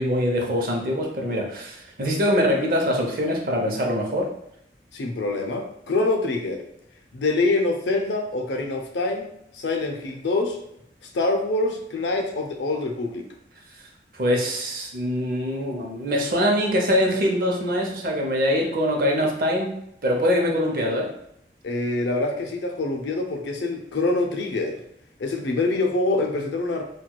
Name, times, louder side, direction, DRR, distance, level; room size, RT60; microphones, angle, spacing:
voice 1, 0.0-4.3 14.1-19.7 20.0-21.1, equal, 50° right, 0 dB, 0.6 m, -23 dB
voice 2, 4.9-6.6 7.1-10.6 11.1-13.2 21.6-24.8 25.2-26.8, left 2 dB, 90° left, 3 dB, 0.6 m, -25 dB
4.4 x 2.2 x 2.2 m, 0.75 s
head